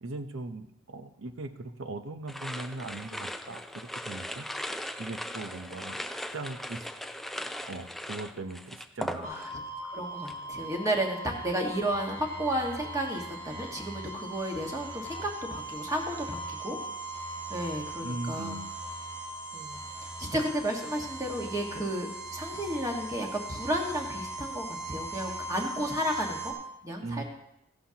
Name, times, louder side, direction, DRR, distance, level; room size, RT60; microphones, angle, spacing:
voice 1, 0.0-4.5 5.0-6.0 6.3-6.9 7.3-9.3 18.0-18.7 27.0-27.2, right 2 dB, 65° right, 8 dB, 0.8 m, -39 dB
sound 1, 2.3-9.7 10.0-10.4, equal, ahead, 0.3 m, -39 dB
voice 2, 9.1-9.5 9.8-16.8 17.5-18.6 19.5-26.5 26.8-27.2, right 1 dB, 15° right, 0 dB, 1.5 m, -33 dB
sound 2, 9.2-26.5, right 2 dB, 35° right, 2.8 m, -39 dB
15.0 x 11.5 x 2.9 m, 0.83 s
head